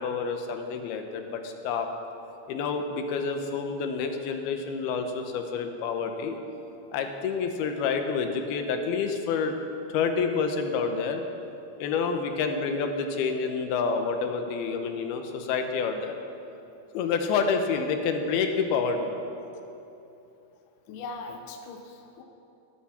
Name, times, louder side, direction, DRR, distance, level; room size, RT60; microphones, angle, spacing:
voice 1, 0.0-1.9 2.5-6.4 6.9-9.5 9.9-11.2 11.8-16.1 16.9-19.1, left 5 dB, 90° left, 5 dB, 2.9 m, -28 dB
voice 2, 20.9-22.2, left 3 dB, 70° left, 4 dB, 2.1 m, -40 dB
19.0 x 11.0 x 4.3 m, 2.9 s
omnidirectional pair, 4.4 m